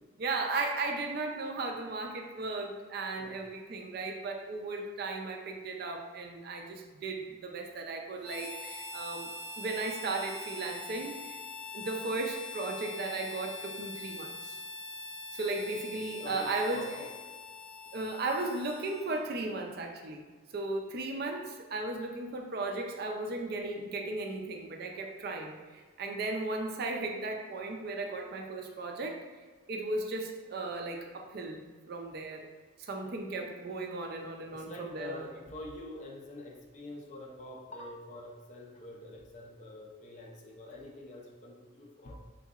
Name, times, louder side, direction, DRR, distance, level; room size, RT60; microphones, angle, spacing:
voice 1, 0.2-9.3 9.6-11.4 11.7-14.5 15.3-16.8 17.9-20.2 20.5-29.2 29.7-31.6 31.9-32.5 32.8-35.2, right 2 dB, 50° right, 3 dB, 0.4 m, -36 dB
Harmonica, 8.2-19.3, left 3 dB, 55° left, 0.9 m, -43 dB
voice 2, 16.2-17.1 19.4-19.6 24.4-24.5 24.9-25.2 31.2-31.5 34.5-42.2, left 1 dB, 40° left, 0 dB, 0.4 m, -46 dB
3.6 x 2.9 x 2.4 m, 1.4 s
head